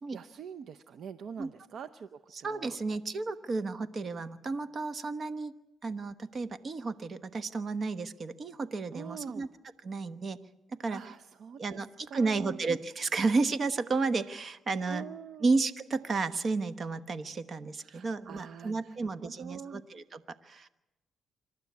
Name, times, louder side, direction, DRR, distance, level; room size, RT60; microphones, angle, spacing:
voice 1, 0.1-2.8 8.9-9.5 10.9-11.6 12.1-12.6 14.9-15.4 17.8-19.8, right 7 dB, 65° right, 11 dB, 0.7 m, -44 dB
voice 2, 2.3-5.5 5.8-9.5 9.8-10.4 10.8-11.0 11.6-15.0 15.4-20.7, right 3 dB, 45° right, 12 dB, 1.1 m, -32 dB
26.5 x 12.0 x 9.5 m, 0.98 s
cardioid pair, 90°, 0 cm